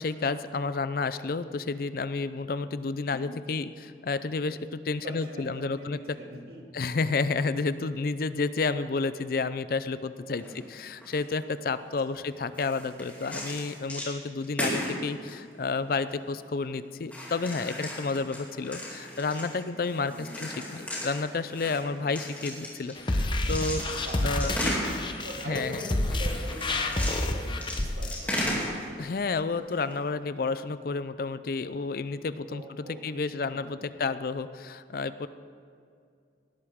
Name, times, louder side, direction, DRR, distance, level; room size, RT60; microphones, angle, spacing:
voice 1, 0.0-6.0 6.7-24.7 25.5-25.8 29.0-35.3, left 4 dB, 55° left, 13 dB, 0.4 m, -31 dB
voice 2, 5.0-6.6 10.4-10.7 12.1-12.2 20.1-20.4 23.9-24.6 25.2-28.3 32.5-33.9, equal, 60° right, -1 dB, 2.4 m, -42 dB
sound 1, 10.4-10.6 10.9-11.3 11.9-12.0 12.5-14.1 14.4-16.3 17.1-23.1 23.4-25.3 26.0-29.2 29.5-29.9, equal, 10° left, 2.7 m, -35 dB
sound 2, 23.0-28.2, left 1 dB, 25° left, 0.8 m, -29 dB
18.0 x 12.5 x 3.6 m, 2.3 s
head